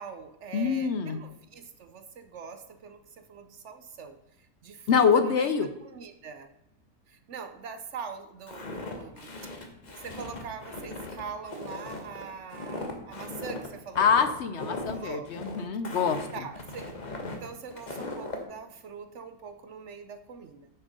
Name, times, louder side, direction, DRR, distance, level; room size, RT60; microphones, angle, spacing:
voice 1, 0.0-4.2 4.6-5.5 5.8-6.5 7.1-9.3 9.9-14.2 14.5-15.3 16.3-17.0 17.2-20.7, right 6 dB, 65° right, 9 dB, 0.9 m, -43 dB
voice 2, 0.5-1.2 4.9-5.7 14.0-16.4, left 6 dB, 65° left, 10 dB, 0.7 m, -25 dB
Walk footsteps, 8.5-18.4, left 2 dB, 30° left, 1.1 m, -39 dB
7.2 x 6.5 x 5.3 m, 0.87 s
omnidirectional pair, 1.6 m